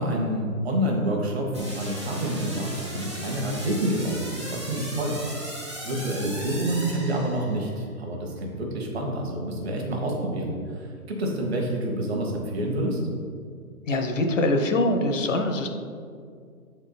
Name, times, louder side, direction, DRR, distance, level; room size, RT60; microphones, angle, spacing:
voice 1, 0.0-5.1 5.8-13.0, right 1 dB, 45° right, 0 dB, 1.2 m, -28 dB
sound 1, 1.5-7.8, equal, 20° right, 0.6 m, -38 dB
voice 2, 13.9-15.7, left 1 dB, 55° left, 5 dB, 0.7 m, -23 dB
7.1 x 4.4 x 4.0 m, 2.2 s
hypercardioid pair, 175°, 45 cm